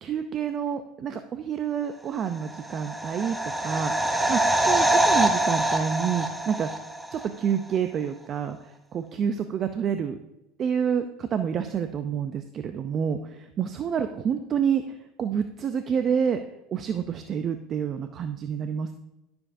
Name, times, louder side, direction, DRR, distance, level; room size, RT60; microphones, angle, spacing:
voice 1, 0.0-6.7 7.1-8.6 8.9-10.2 10.6-16.4 16.7-18.9, right 7 dB, 40° right, 8 dB, 0.5 m, -28 dB
sound 1, 2.4-7.3 7.5-7.6, right 1 dB, 5° right, 0.8 m, -24 dB
13.5 x 7.1 x 2.6 m, 0.93 s
supercardioid pair, 110°, 0 cm